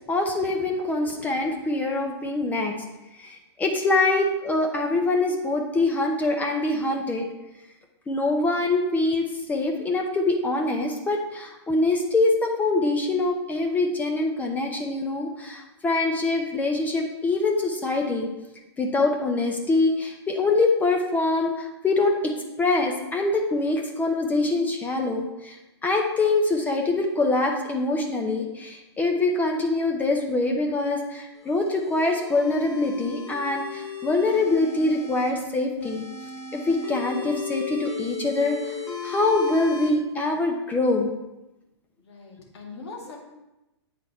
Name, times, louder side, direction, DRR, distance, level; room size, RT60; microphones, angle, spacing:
voice 1, 0.1-2.7 3.2-7.3 8.1-18.3 18.8-25.6 25.8-36.1 36.5-38.8 39.0-41.1, left 2 dB, 10° left, 2 dB, 0.7 m, -24 dB
sound 1, 31.4-35.3 35.8-39.9, left 6 dB, 85° left, 2.4 m, -36 dB
voice 2, 42.0-43.2, left 4 dB, 65° left, 0 dB, 2.0 m, -41 dB
8.8 x 4.0 x 4.3 m, 0.98 s
hypercardioid pair, 130°, 15 cm